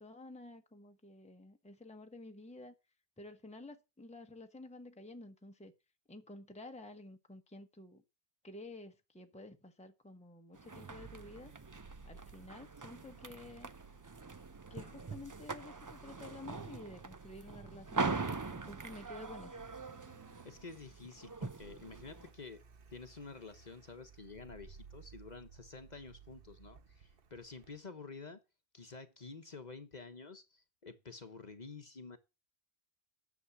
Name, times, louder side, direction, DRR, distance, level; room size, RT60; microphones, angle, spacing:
voice 1, 0.0-2.7 3.2-5.7 6.1-8.0 8.4-11.5 12.0-13.7 14.7-19.6, left 2 dB, 5° left, 1.0 m, -51 dB
sound 1, 10.5-22.3, right 3 dB, 25° right, 0.5 m, -43 dB
Car, 10.9-27.8, right 5 dB, 60° right, 1.1 m, -58 dB
voice 2, 20.4-22.6 22.9-28.4 28.7-32.2, left 4 dB, 45° left, 1.2 m, -50 dB
9.9 x 7.2 x 7.2 m
omnidirectional pair, 1.1 m